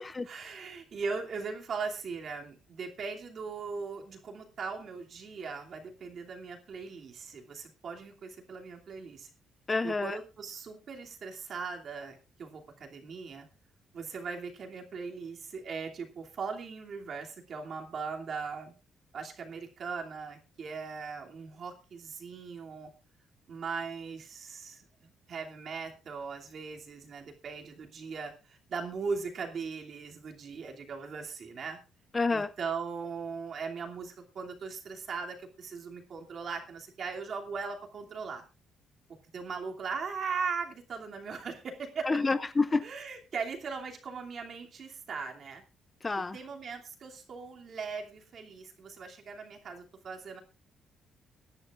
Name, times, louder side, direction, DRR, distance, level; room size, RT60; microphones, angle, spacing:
voice 1, 0.3-9.3 9.8-13.5 13.9-18.7 19.1-22.9 23.5-31.8 32.3-38.4 39.3-42.1 42.8-45.6 46.3-50.4, right 5 dB, 45° right, 2 dB, 2.8 m, -39 dB
voice 2, 9.7-10.2 32.1-32.5 42.1-42.9 46.0-46.4, left 3 dB, 20° left, 13 dB, 0.5 m, -28 dB
23.0 x 10.5 x 2.5 m, 0.30 s
cardioid pair, 150°, 0 cm